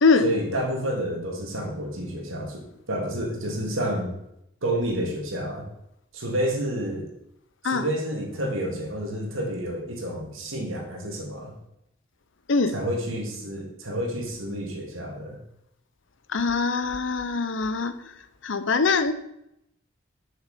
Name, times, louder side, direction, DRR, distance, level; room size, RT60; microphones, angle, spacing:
voice 1, 0.2-4.1 4.6-5.6 6.1-7.1 7.6-11.5 12.7-15.4, right 1 dB, 85° right, 0 dB, 2.3 m, -29 dB
voice 2, 16.3-18.0 18.4-19.1, left 4 dB, 70° left, 12 dB, 0.7 m, -23 dB
6.7 x 6.7 x 5.0 m, 0.80 s
head